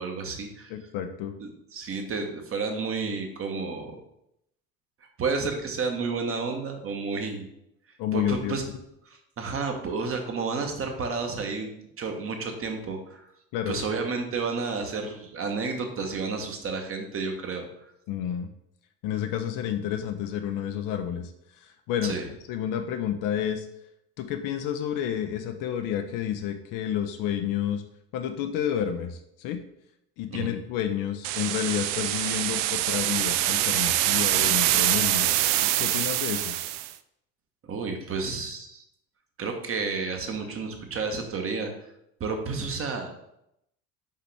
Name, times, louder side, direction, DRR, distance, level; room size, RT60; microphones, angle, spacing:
voice 1, 0.0-0.7 1.4-4.0 5.2-7.5 8.1-8.6 9.0-11.7 12.0-13.2 13.7-17.7 22.0-22.2 30.3-30.5 37.6-38.8 39.4-41.7 42.2-43.1, right 4 dB, 30° right, 3 dB, 1.2 m, -31 dB
voice 2, 0.7-1.3 8.0-8.5 13.5-13.8 18.1-18.5 19.0-21.3 21.6-22.2 22.5-23.7 24.2-27.8 28.1-29.6 30.2-35.4 35.8-36.5, left 9 dB, 45° left, 7 dB, 0.7 m, -30 dB
sound 1, 31.2-36.9, right 14 dB, 55° right, 0.5 m, -25 dB
5.6 x 5.0 x 3.4 m, 0.78 s
figure-of-eight pair, 65°, 45 cm